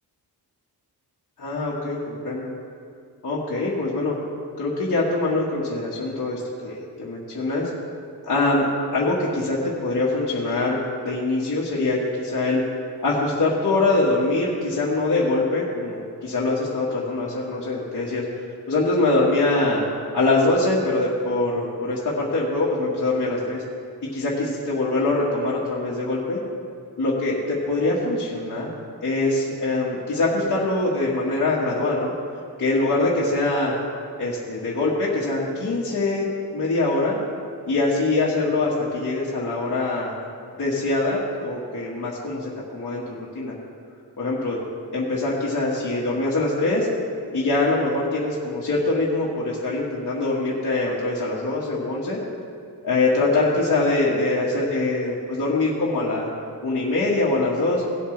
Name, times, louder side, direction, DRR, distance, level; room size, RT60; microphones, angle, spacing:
voice 1, 1.4-2.5 3.2-4.2 4.6-7.7 8.2-8.7 8.9-12.6 13.0-19.8 20.1-23.6 24.0-26.4 27.0-28.7 29.0-32.1 32.6-33.8 34.2-36.3 36.5-37.2 37.7-40.1 40.6-43.5 44.2-44.6 44.9-46.9 47.3-52.2 52.8-56.3 56.6-57.8, left 2 dB, 50° left, -7 dB, 1.8 m, -23 dB
18.0 x 7.9 x 3.4 m, 2.3 s
cardioid pair, 100°, 40 cm